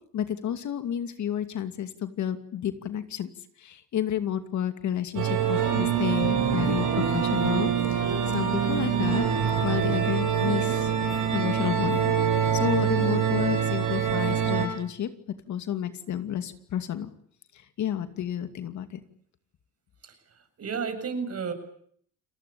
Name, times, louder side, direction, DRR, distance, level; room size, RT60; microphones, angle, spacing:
voice 1, 0.1-3.3 3.6-8.0 8.3-9.3 9.6-12.1 12.5-15.1 15.5-17.1 17.8-19.0, left 10 dB, 70° left, 9 dB, 2.5 m, -31 dB
sound 1, 5.2-14.7, right 8 dB, 85° right, 7.9 m, -25 dB
voice 2, 20.0-21.5, right 5 dB, 55° right, 7 dB, 7.3 m, -33 dB
30.0 x 20.5 x 8.7 m, 0.64 s
cardioid pair, 90°, 30 cm